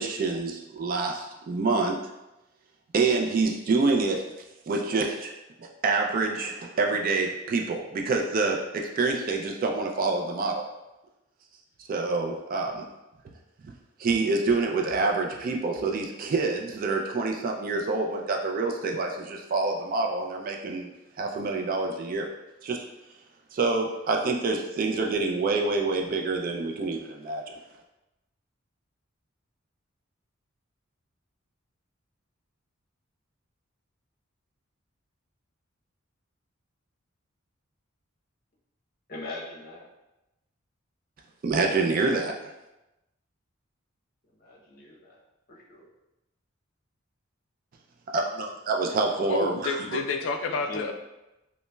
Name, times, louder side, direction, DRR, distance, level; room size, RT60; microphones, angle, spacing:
voice 1, 0.0-2.0 2.9-4.2 4.7-5.3 5.6-10.7 11.8-12.9 14.0-20.9 21.2-22.3 22.6-22.8 23.5-27.4 41.4-42.5 48.1-49.9, right 3 dB, 45° right, 2 dB, 0.3 m, -27 dB
voice 2, 39.1-39.9 44.3-45.2 45.5-45.9 48.9-49.4 50.5-50.9, left 2 dB, 45° left, -3 dB, 0.8 m, -41 dB
voice 3, 49.3-50.9, left 4 dB, 70° left, 6 dB, 0.3 m, -29 dB
5.2 x 2.0 x 2.2 m, 0.97 s
head